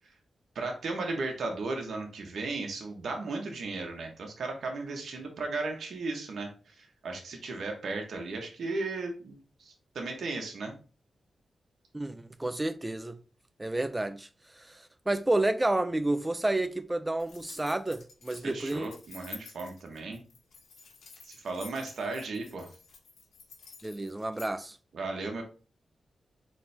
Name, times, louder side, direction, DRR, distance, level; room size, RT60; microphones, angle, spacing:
voice 1, 0.5-10.7 18.4-20.2 21.2-22.7 24.9-25.4, right 3 dB, 75° right, 1.0 m, -35 dB
voice 2, 11.9-13.2 13.6-14.3 14.6-18.9 23.8-24.8, right 2 dB, 15° right, 0.4 m, -30 dB
sound 1, 17.2-24.5, left 4 dB, 85° left, 1.3 m, -50 dB
4.2 x 3.3 x 3.3 m
cardioid pair, 85°, 0 cm